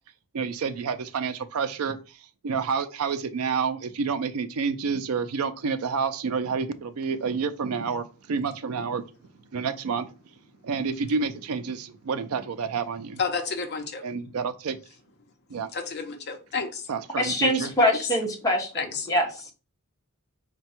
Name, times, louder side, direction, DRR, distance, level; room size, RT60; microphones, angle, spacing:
voice 1, 0.3-2.2 2.4-9.0 9.5-10.1 10.6-13.2 14.0-14.8 15.5-15.7 16.9-17.7, right 5 dB, 85° right, 0.4 m, -29 dB
voice 2, 13.2-14.0 15.7-16.9 17.8-18.0 18.7-19.1, left 5 dB, 50° left, 0.7 m, -31 dB
voice 3, 17.2-19.4, left 1 dB, 15° left, 1.0 m, -24 dB
4.3 x 2.2 x 4.2 m
head